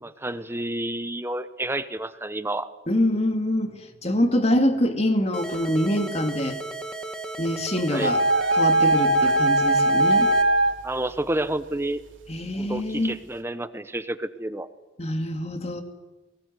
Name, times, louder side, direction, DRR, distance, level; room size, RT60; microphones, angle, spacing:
voice 1, 0.0-2.7 7.9-8.1 10.8-12.0 12.5-14.7, right 1 dB, 15° right, 12 dB, 1.0 m, -30 dB
voice 2, 2.9-6.6 7.4-8.2 8.5-10.3 12.3-13.2 15.0-15.8, left 1 dB, 35° left, 6 dB, 2.4 m, -25 dB
sound 1, 5.3-10.4, right 3 dB, 5° left, 1.6 m, -35 dB
sound 2, 8.0-10.7, right 1 dB, 90° right, 3.0 m, -20 dB
22.5 x 19.5 x 9.5 m, 1.2 s
head